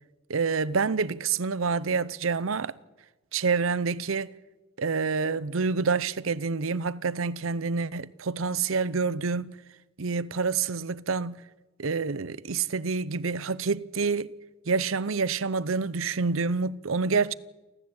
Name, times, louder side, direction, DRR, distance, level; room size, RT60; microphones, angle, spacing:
voice 1, 0.3-2.7 3.3-4.3 4.8-9.5 10.0-11.4 11.8-14.3 14.7-17.3, right 4 dB, 80° right, 0.7 m, -27 dB
29.5 x 13.0 x 8.6 m
head